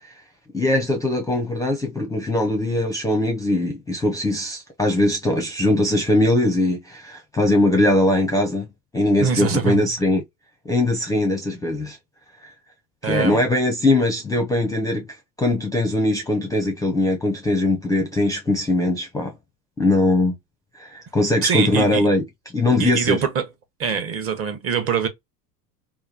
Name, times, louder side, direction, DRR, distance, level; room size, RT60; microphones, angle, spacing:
voice 1, 0.5-8.7 8.9-10.2 10.7-12.0 13.0-15.1 15.4-19.4 19.8-20.4 20.7-22.2 22.5-23.2, left 1 dB, 5° left, 0.5 m, -21 dB
voice 2, 9.2-10.0 13.0-13.4 21.4-22.1 22.8-23.5 23.8-25.1, right 6 dB, 30° right, 0.8 m, -23 dB
3.0 x 2.2 x 2.3 m
hypercardioid pair, 90°, 50 cm